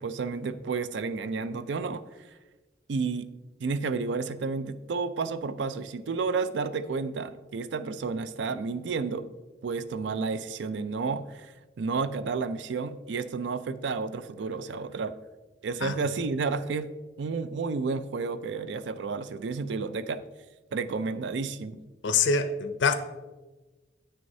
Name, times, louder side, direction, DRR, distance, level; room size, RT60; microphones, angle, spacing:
voice 1, 0.0-2.0 2.9-3.3 3.6-9.2 9.6-11.5 11.8-15.1 15.6-16.9 17.2-20.2 20.7-21.8, right 4 dB, 75° right, 0.4 m, -31 dB
voice 2, 22.0-22.9, left 5 dB, 80° left, 0.5 m, -24 dB
9.4 x 6.3 x 2.7 m
head